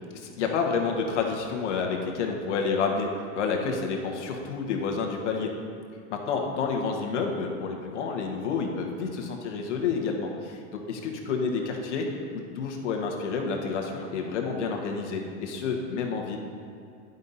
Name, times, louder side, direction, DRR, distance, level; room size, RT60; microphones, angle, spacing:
voice 1, 0.1-3.1 3.3-5.5 6.1-12.0 12.3-16.4, left 5 dB, 80° left, 2 dB, 1.4 m, -29 dB
10.5 x 5.4 x 4.1 m, 2.5 s
supercardioid pair, 155°, 35 cm